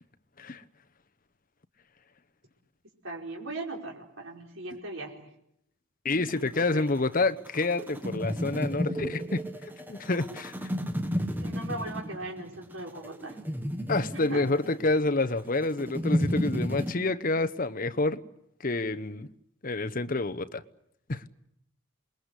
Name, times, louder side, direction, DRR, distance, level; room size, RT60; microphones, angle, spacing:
voice 1, 3.0-5.3 6.6-6.9 11.4-13.4 14.3-14.4, right 2 dB, 70° right, 4.9 m, -38 dB
voice 2, 6.0-9.4 9.9-10.7 13.9-18.2 18.6-19.3 19.6-20.6 21.1-21.2, left 2 dB, 40° left, 0.9 m, -28 dB
sound 1, 6.3-16.9, equal, 10° right, 1.6 m, -32 dB
27.5 x 21.0 x 8.3 m
head